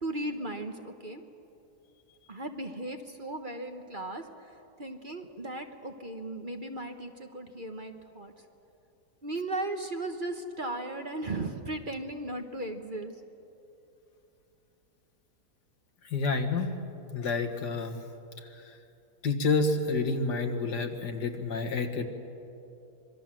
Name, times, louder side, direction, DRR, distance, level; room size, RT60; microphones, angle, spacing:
voice 1, 0.0-1.2 2.3-8.3 9.2-13.2, right 2 dB, 35° right, 5 dB, 1.3 m, -36 dB
voice 2, 16.0-16.7 17.1-18.0 18.4-18.8 19.2-22.1, left 3 dB, 80° left, 5 dB, 2.2 m, -29 dB
26.0 x 22.5 x 7.7 m, 2.8 s
omnidirectional pair, 1.8 m